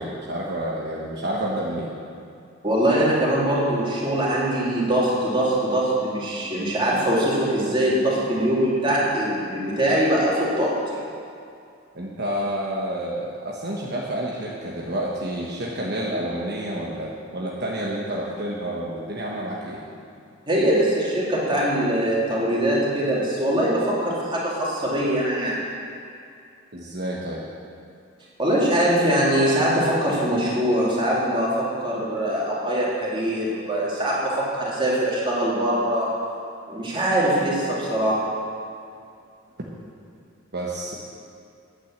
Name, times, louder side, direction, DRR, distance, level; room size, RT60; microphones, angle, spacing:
voice 1, 0.0-1.9 11.9-19.8 26.7-27.4 40.5-40.9, right 1 dB, 55° right, -4 dB, 1.2 m, -29 dB
voice 2, 2.6-11.0 20.5-25.6 28.4-36.1 36.7-38.2, right 1 dB, 25° right, -6 dB, 2.8 m, -22 dB
9.8 x 9.0 x 7.4 m, 2.4 s
head